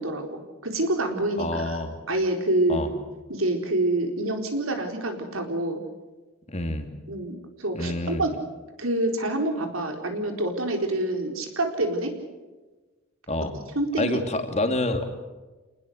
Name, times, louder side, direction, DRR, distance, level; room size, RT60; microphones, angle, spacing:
voice 1, 0.0-1.8 2.1-2.8 3.3-5.8 7.1-8.3 8.8-12.1 13.7-14.2, right 1 dB, 90° right, 4 dB, 4.3 m, -27 dB
voice 2, 1.4-1.9 2.7-2.9 6.5-6.9 7.7-8.3 13.3-13.5 14.0-15.0, left 2 dB, 35° left, 6 dB, 2.6 m, -27 dB
28.0 x 20.0 x 6.6 m, 1.2 s
head